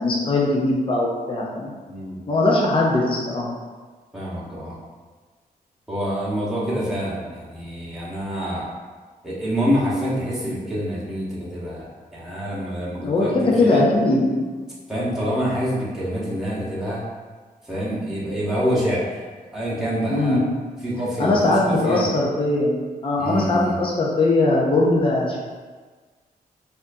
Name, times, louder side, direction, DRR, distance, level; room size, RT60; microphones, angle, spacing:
voice 1, 0.0-1.7 2.3-3.5 12.9-14.5 20.1-20.4 21.2-25.4, left 2 dB, 35° left, -3 dB, 0.6 m, -20 dB
voice 2, 1.9-2.2 4.1-4.8 5.9-8.7 9.2-11.9 12.1-13.3 13.6-13.8 14.9-17.0 17.6-19.1 19.5-20.4 20.8-22.0 23.2-23.7, equal, 5° right, -8 dB, 1.0 m, -26 dB
4.2 x 2.5 x 2.7 m, 1.4 s
wide cardioid pair, 120°, 16 cm